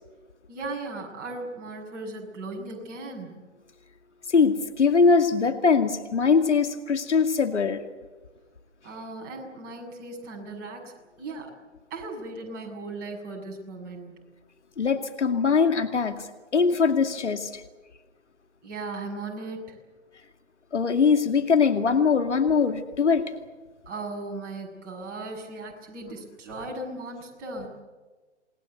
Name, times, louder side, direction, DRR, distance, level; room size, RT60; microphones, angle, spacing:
voice 1, 0.5-3.3 8.8-11.5 11.9-14.2 18.6-19.8 23.9-27.7, right 2 dB, 25° right, 0 dB, 7.1 m, -37 dB
voice 2, 4.3-7.8 14.8-16.2 16.5-17.6 20.7-23.3, left 5 dB, 75° left, 7 dB, 2.5 m, -22 dB
28.0 x 20.5 x 8.2 m, 1.3 s
figure-of-eight pair, 130°, 35 cm